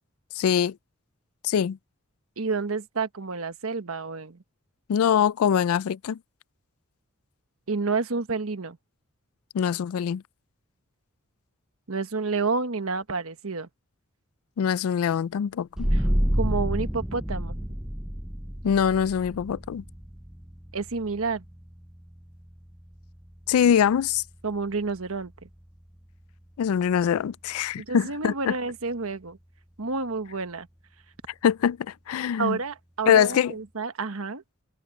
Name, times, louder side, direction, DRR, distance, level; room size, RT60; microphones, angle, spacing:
voice 1, 0.4-0.7 1.4-1.8 4.9-6.2 9.5-10.2 14.6-15.9 18.6-19.8 23.5-24.2 26.6-28.5 31.4-32.6 33.1-33.5, left 8 dB, 80° left, 0.3 m, -23 dB
voice 2, 2.4-4.4 7.7-8.8 11.9-13.7 15.9-16.1 16.3-17.6 20.7-21.4 24.4-25.5 27.8-29.4 29.8-30.7 32.4-34.4, right 4 dB, 75° right, 1.3 m, -29 dB
sound 1, 15.8-27.0, equal, 5° right, 0.4 m, -31 dB
head